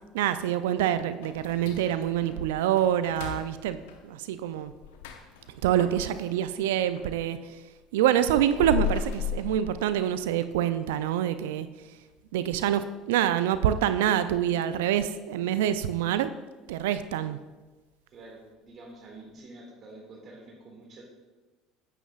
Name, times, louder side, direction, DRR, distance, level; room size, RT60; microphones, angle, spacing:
voice 1, 0.1-4.7 5.6-7.4 7.9-11.7 12.3-16.3 16.7-17.4, right 10 dB, 75° right, 12 dB, 0.4 m, -26 dB
sound 1, 1.2-7.2 7.5-10.4 10.7-10.8 11.3-11.4 12.0-12.3 12.6-12.7 13.2-13.3, left 8 dB, 75° left, 0.7 m, -37 dB
voice 2, 18.1-21.0, right 2 dB, 45° right, 0 dB, 2.0 m, -47 dB
9.2 x 9.2 x 2.4 m, 1.2 s
hypercardioid pair, 65°, 0 cm